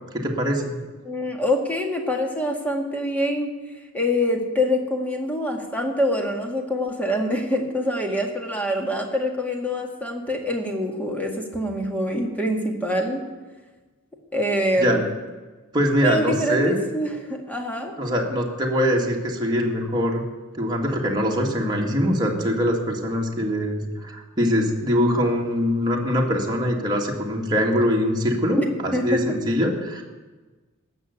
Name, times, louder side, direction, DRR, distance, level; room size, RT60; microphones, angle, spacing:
voice 1, 0.1-0.7 14.8-15.0 15.7-16.8 18.0-20.2 20.5-30.0, equal, 20° right, -1 dB, 2.1 m, -23 dB
voice 2, 1.0-3.5 3.9-13.2 14.3-15.1 16.0-17.9 28.6-28.7 28.9-29.2, left 1 dB, 5° left, 2 dB, 2.0 m, -25 dB
18.0 x 7.0 x 8.2 m, 1.3 s
head